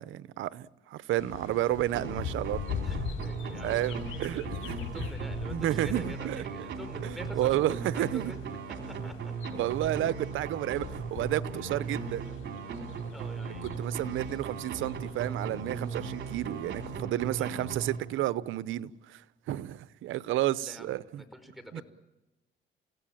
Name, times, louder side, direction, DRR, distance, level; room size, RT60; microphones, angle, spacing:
voice 1, 0.0-2.6 3.6-4.8 5.5-6.4 7.0-8.3 9.5-12.2 13.6-19.2 19.5-21.2 21.7-21.8, right 14 dB, 85° right, 0.9 m, -31 dB
sound 1, 1.2-16.9, left 8 dB, 90° left, 5.5 m, -43 dB
sound 2, 1.9-18.5, right 5 dB, 70° right, 3.4 m, -38 dB
voice 2, 2.8-8.4 8.7-9.3 11.5-12.3 13.1-13.7 17.3-17.7 20.6-21.8, equal, ahead, 5.0 m, -47 dB
29.5 x 17.0 x 8.8 m
cardioid pair, 90°, 20 cm